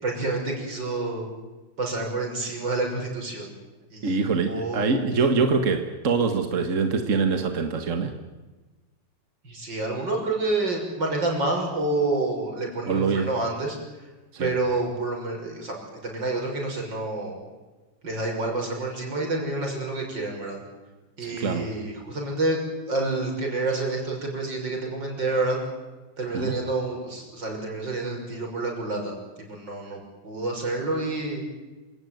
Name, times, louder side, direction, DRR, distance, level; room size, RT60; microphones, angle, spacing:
voice 1, 0.0-1.3 1.8-3.5 3.9-5.0 9.4-13.8 14.4-17.4 18.0-20.6 21.2-22.6 22.9-25.6 26.2-31.5, right 2 dB, 75° right, 1 dB, 6.9 m, -28 dB
voice 2, 4.0-8.1 12.9-13.3 14.3-14.5 21.2-21.7 26.3-26.5, right 4 dB, 45° right, 6 dB, 1.9 m, -24 dB
27.0 x 18.0 x 9.3 m, 1.2 s
omnidirectional pair, 2.0 m